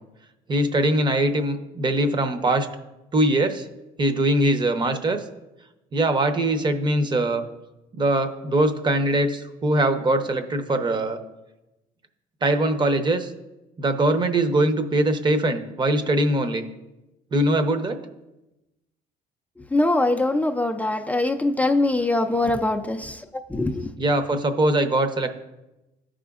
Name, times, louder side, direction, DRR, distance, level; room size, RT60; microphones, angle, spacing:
voice 1, 0.5-2.7 3.1-3.7 4.0-5.2 5.9-7.4 8.0-11.2 12.4-13.3 13.8-16.6 17.3-18.0 24.0-25.3, right 1 dB, 25° right, 7 dB, 0.7 m, -22 dB
voice 2, 19.7-23.2 23.5-23.9, left 2 dB, 10° left, 4 dB, 0.3 m, -22 dB
14.0 x 5.0 x 2.4 m, 1.0 s
cardioid pair, 110°, 17 cm